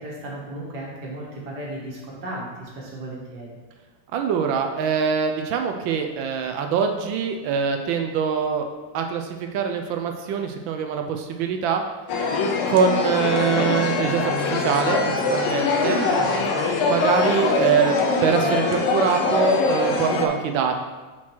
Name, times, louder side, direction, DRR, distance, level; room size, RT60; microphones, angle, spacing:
voice 1, 0.0-3.5 15.8-16.5, right 1 dB, 50° right, -4 dB, 1.9 m, -35 dB
voice 2, 4.1-8.7 8.9-11.8 12.7-16.0 16.9-17.9 18.2-20.8, right 6 dB, 75° right, 5 dB, 1.2 m, -24 dB
sound 1, 12.1-20.3, left 3 dB, 75° left, 1.6 m, -23 dB
5.9 x 4.4 x 4.5 m, 1.3 s
omnidirectional pair, 2.4 m